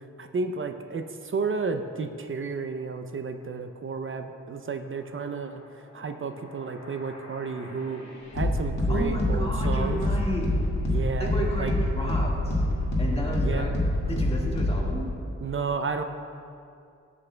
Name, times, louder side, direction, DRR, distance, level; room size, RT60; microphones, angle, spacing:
voice 1, 0.2-5.6 5.9-8.0 8.3-10.0 10.9-11.7 13.4-13.7 15.4-16.0, right 4 dB, 45° right, 7 dB, 0.5 m, -32 dB
sound 1, 6.3-15.0, left 1 dB, 70° left, 1.9 m, -27 dB
voice 2, 8.9-10.5 11.2-12.6 13.0-13.7 14.1-15.1, left 1 dB, 20° left, -3 dB, 1.6 m, -32 dB
13.0 x 8.4 x 2.2 m, 2.5 s
wide cardioid pair, 80°, 29 cm